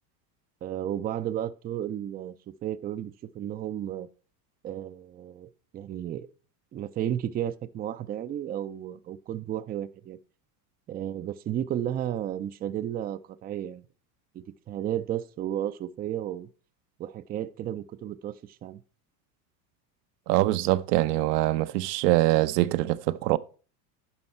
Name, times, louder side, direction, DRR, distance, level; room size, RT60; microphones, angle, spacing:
voice 1, 0.6-2.3 2.6-4.1 4.6-6.3 6.7-10.2 10.9-13.8 14.3-16.5 17.0-18.8, right 11 dB, 20° right, 0.3 m, -33 dB
voice 2, 20.3-23.4, right 16 dB, 70° right, 0.7 m, -24 dB
9.9 x 5.6 x 4.3 m
hypercardioid pair, 90°, 50 cm